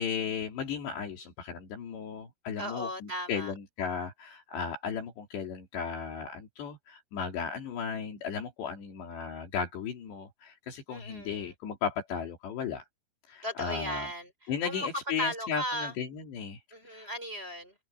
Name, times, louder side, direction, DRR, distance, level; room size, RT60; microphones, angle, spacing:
voice 1, 0.0-12.8 13.3-14.1 14.5-16.6 16.9-17.1, left 6 dB, 70° left, 5.1 m, -35 dB
voice 2, 2.6-3.5 10.9-11.5 13.4-14.9 15.2-15.9 16.7-17.7, equal, 10° right, 6.5 m, -36 dB
omnidirectional pair, 5.2 m